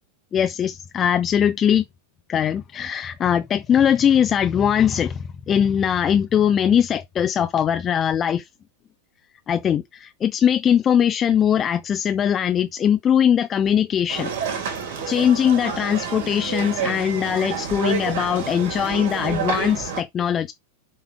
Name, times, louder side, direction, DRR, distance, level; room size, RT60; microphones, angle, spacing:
voice 1, 0.3-1.8 2.3-8.5 9.5-14.3 15.1-20.5, left 9 dB, 25° left, 0.8 m, -21 dB
sound 1, 14.1-20.0, right 7 dB, 55° right, 3.3 m, -29 dB
7.2 x 5.4 x 4.8 m
figure-of-eight pair, 90°, 0 cm